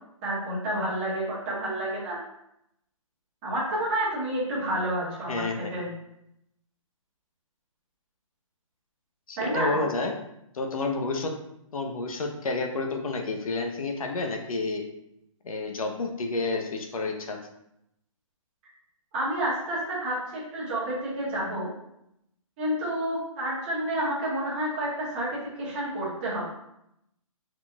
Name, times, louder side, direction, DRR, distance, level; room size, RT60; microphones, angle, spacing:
voice 1, 0.2-2.2 3.4-5.9 9.4-9.8 19.1-21.7 22.6-25.3 25.6-26.5, right 1 dB, 20° right, -8 dB, 1.3 m, -29 dB
voice 2, 5.3-5.7 9.3-10.1 10.5-11.3 11.7-14.8 15.4-17.4, left 3 dB, 80° left, 3 dB, 0.8 m, -30 dB
4.8 x 3.8 x 2.3 m, 0.81 s
hypercardioid pair, 175°, 18 cm